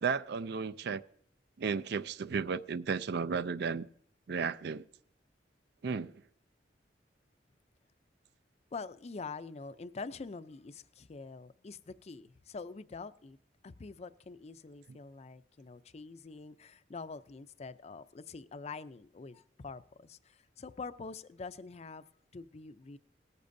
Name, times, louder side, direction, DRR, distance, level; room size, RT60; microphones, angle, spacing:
voice 1, 0.0-1.0 1.6-3.9 4.3-4.8 5.8-6.2, right 5 dB, 65° right, 0.4 m, -34 dB
voice 2, 8.7-13.4 13.6-23.0, left 4 dB, 35° left, 0.5 m, -45 dB
18.0 x 13.5 x 2.6 m
head